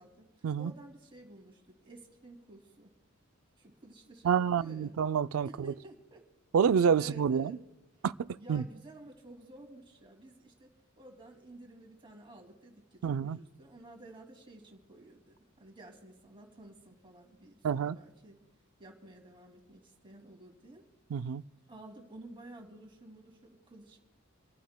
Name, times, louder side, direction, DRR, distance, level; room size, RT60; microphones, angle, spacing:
voice 1, 0.6-2.9 3.6-4.9 5.4-6.2 7.0-7.6 8.4-10.7 11.0-18.4 18.8-20.8 21.7-24.0, right 1 dB, 25° right, 2.4 m, -52 dB
voice 2, 4.2-5.7 6.5-7.6 8.0-8.6 13.0-13.4 17.6-18.0 21.1-21.4, right 7 dB, 75° right, 0.4 m, -28 dB
28.0 x 15.0 x 2.2 m
head